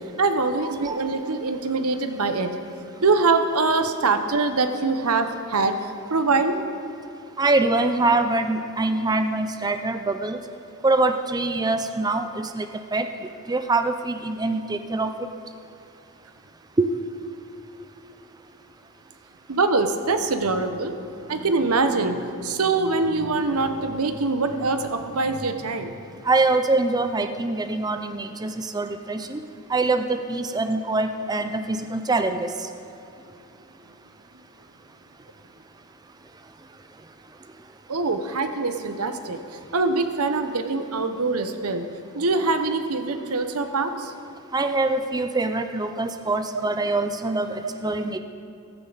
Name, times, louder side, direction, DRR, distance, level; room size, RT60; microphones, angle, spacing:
voice 1, 0.2-2.5 3.0-6.6 19.5-25.9 37.9-39.4 39.7-41.9 42.1-44.1, right 3 dB, 85° right, 8 dB, 1.0 m, -24 dB
voice 2, 0.8-1.3 7.4-10.4 10.8-15.3 16.8-16.9 26.2-29.4 29.7-32.7 44.5-48.2, right 2 dB, 20° right, 8 dB, 0.5 m, -24 dB
15.0 x 15.0 x 4.0 m, 2.8 s
head